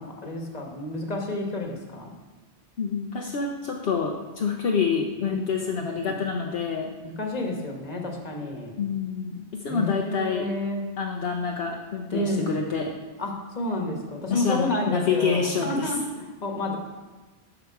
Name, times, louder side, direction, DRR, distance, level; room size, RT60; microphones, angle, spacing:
voice 1, 0.0-2.1 5.3-6.1 7.0-8.8 9.7-10.8 12.1-12.5 13.2-16.8, left 1 dB, 40° left, 1 dB, 1.4 m, -30 dB
voice 2, 2.8-6.9 8.8-10.5 11.0-12.9 14.3-15.9, left 6 dB, 65° left, 0 dB, 0.9 m, -27 dB
12.0 x 5.0 x 4.6 m, 1.2 s
omnidirectional pair, 1.1 m